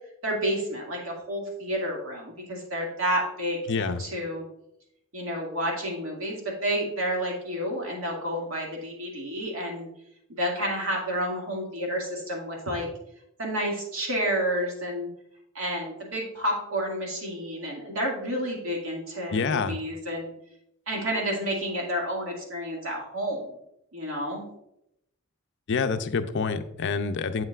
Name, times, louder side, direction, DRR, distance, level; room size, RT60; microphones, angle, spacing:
voice 1, 0.2-4.4 5.1-9.9 10.4-12.9 13.4-15.1 15.5-20.3 20.9-23.6 23.9-24.4, equal, 70° right, -1 dB, 2.2 m, -30 dB
voice 2, 3.7-4.0 19.3-19.8 25.7-27.4, left 4 dB, 60° left, 9 dB, 0.5 m, -27 dB
7.8 x 7.7 x 2.4 m, 0.81 s
head